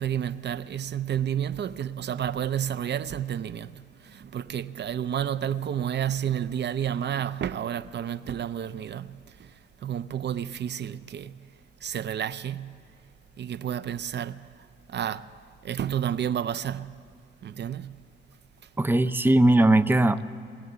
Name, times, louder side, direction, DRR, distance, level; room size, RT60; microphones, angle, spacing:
voice 1, 0.0-11.5 11.8-12.9 13.4-15.3 15.6-17.1 17.4-18.1, right 9 dB, 65° right, 0.5 m, -31 dB
voice 2, 18.8-20.3, right 1 dB, 10° right, 0.6 m, -20 dB
23.0 x 20.0 x 8.1 m
cardioid pair, 95°, 19 cm